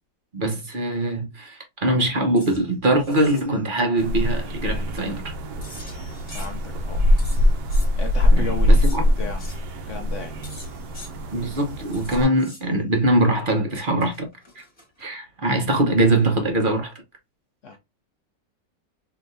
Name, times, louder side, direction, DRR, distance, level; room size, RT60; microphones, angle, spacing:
voice 1, 0.3-5.3 8.3-9.0 11.3-14.3 14.5-14.6 15.0-16.9, right 1 dB, 40° right, 0.8 m, -22 dB
sound 1, 2.4-2.6 3.0-3.5 5.6-6.6 7.2-7.9 8.8-9.0 9.4-9.6 10.4-11.1 11.9-12.7 14.0-15.1, left 2 dB, 20° left, 1.4 m, -44 dB
sound 2, 4.0-12.2, left 1 dB, 70° right, 1.3 m, -22 dB
voice 2, 6.3-7.0 8.0-9.4 9.9-10.3 17.6-17.8, left 4 dB, 75° left, 0.7 m, -34 dB
5.1 x 2.9 x 2.6 m
omnidirectional pair, 1.9 m